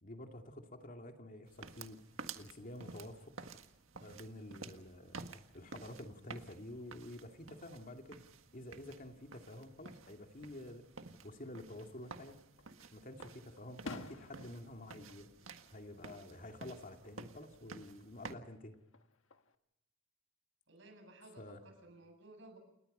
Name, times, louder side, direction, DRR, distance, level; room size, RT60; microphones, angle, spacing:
voice 1, 0.0-2.0 2.4-3.3 4.0-5.3 5.5-8.3 8.5-10.9 11.2-12.4 12.9-15.3 15.7-18.8 21.4-21.6, left 1 dB, 45° left, 4 dB, 2.4 m, -49 dB
sound 1, 1.5-18.3, right 4 dB, 90° right, 1.7 m, -53 dB
Fireworks, 12.0-12.7 13.2-16.3 16.6-17.2 18.7-19.6, left 2 dB, 75° left, 1.4 m, -51 dB
voice 2, 20.7-22.6, right 2 dB, 65° right, 6 dB, 7.4 m, -57 dB
30.0 x 19.5 x 5.5 m, 0.86 s
head